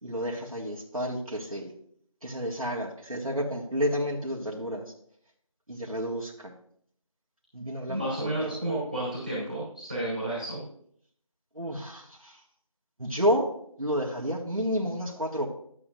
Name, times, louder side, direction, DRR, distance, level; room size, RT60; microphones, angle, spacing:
voice 1, 0.0-1.7 2.2-4.9 5.7-6.5 7.5-8.5 11.5-12.4 13.0-13.5 13.8-15.5, equal, 80° right, -3 dB, 1.8 m, -30 dB
voice 2, 7.9-10.6, right 1 dB, 15° right, -11 dB, 2.8 m, -31 dB
12.5 x 8.4 x 2.6 m, 0.65 s
figure-of-eight pair, 180°, 18 cm